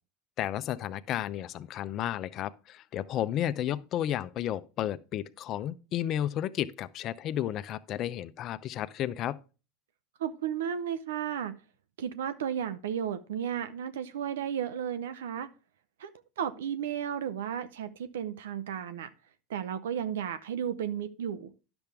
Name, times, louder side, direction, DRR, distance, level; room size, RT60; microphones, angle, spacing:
voice 1, 0.4-9.4, left 11 dB, 45° left, 0.6 m, -32 dB
voice 2, 10.2-11.5 12.0-15.5 16.0-16.1 16.4-19.1 19.5-21.5, right 9 dB, 90° right, 0.6 m, -33 dB
10.5 x 7.0 x 3.4 m
supercardioid pair, 110°, 0 cm